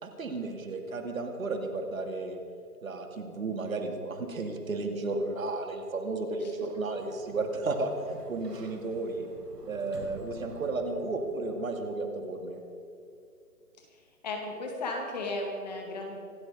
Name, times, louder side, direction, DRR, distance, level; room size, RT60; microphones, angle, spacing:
voice 1, 0.0-2.4 2.8-9.3 9.7-12.6, right 3 dB, 60° right, 4 dB, 2.3 m, -33 dB
Sliding door, 6.7-11.6, right 4 dB, 80° right, 2.4 m, -50 dB
voice 2, 14.2-16.2, left 2 dB, 25° left, 1 dB, 2.2 m, -34 dB
26.0 x 9.0 x 5.1 m, 2.5 s
hypercardioid pair, 170°, 47 cm